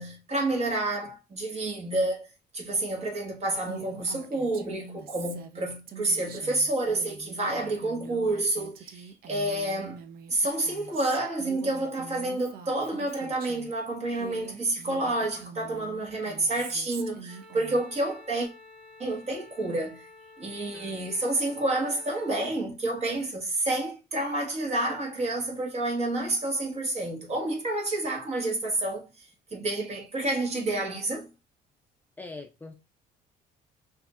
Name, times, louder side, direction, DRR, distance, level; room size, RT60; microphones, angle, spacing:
voice 1, 0.0-2.3 2.5-10.0 10.3-18.5 19.0-20.0 20.4-29.2 29.5-31.3, right 2 dB, 40° right, 1.6 m, -29 dB
Female speech woman speaking, 3.7-13.7 14.1-18.0, right 6 dB, 60° right, 0.6 m, -44 dB
Wind instrument woodwind instrument, 17.3-22.4, left 3 dB, 5° right, 2.2 m, -51 dB
voice 2, 20.7-21.1 32.2-32.7, left 3 dB, 10° left, 0.5 m, -43 dB
5.6 x 2.7 x 2.4 m
cardioid pair, 110°, 17 cm